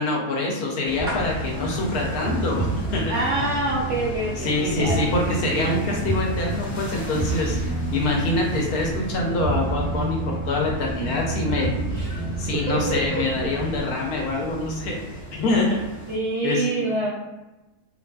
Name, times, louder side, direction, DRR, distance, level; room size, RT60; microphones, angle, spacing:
voice 1, 0.0-2.7 2.9-3.1 4.4-7.6 7.9-11.7 12.4-15.8 16.4-16.6, left 2 dB, 70° left, -1 dB, 1.0 m, -25 dB
sound 1, 0.8-16.2, equal, 40° left, 0.7 m, -38 dB
sound 2, 1.0-13.8, right 2 dB, 15° right, 0.4 m, -29 dB
voice 2, 3.1-5.7 11.8-12.2 12.7-13.2 16.1-17.1, right 2 dB, 75° right, -6 dB, 0.6 m, -27 dB
2.6 x 2.5 x 2.2 m, 1.0 s
omnidirectional pair, 1.7 m